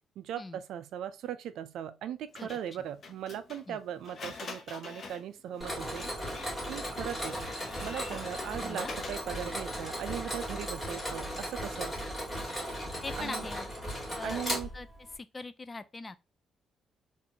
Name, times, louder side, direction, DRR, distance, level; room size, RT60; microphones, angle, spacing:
voice 1, 0.2-6.1 6.7-7.4 7.8-12.0 13.2-13.5 14.2-14.7, right 10 dB, 80° right, 0.4 m, -39 dB
Printer, 2.3-9.6, left 4 dB, 50° left, 0.8 m, -47 dB
Mechanisms, 5.6-15.2, equal, 10° left, 2.1 m, -36 dB
voice 2, 8.6-8.9 13.0-13.7 14.2-14.9 15.2-16.2, left 3 dB, 25° left, 0.4 m, -41 dB
3.6 x 2.6 x 2.7 m
cardioid pair, 90°, 0 cm